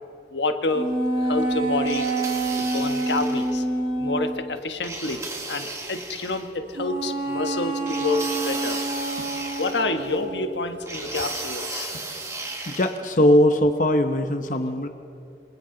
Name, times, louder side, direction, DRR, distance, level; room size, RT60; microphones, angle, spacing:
voice 1, 0.3-0.9 1.2-2.0 2.6-3.6 4.0-8.8 9.6-12.0, left 3 dB, 80° left, 7 dB, 1.3 m, -28 dB
sound 1, 0.7-4.4 6.7-10.7, right 2 dB, 50° right, 5.8 m, -27 dB
sound 2, 1.9-3.6 4.8-6.5 7.9-10.2 10.9-13.0, right 3 dB, 15° right, 1.8 m, -34 dB
voice 2, 12.7-14.9, left 1 dB, 45° left, 6 dB, 0.8 m, -20 dB
27.0 x 26.5 x 3.9 m, 2.5 s
head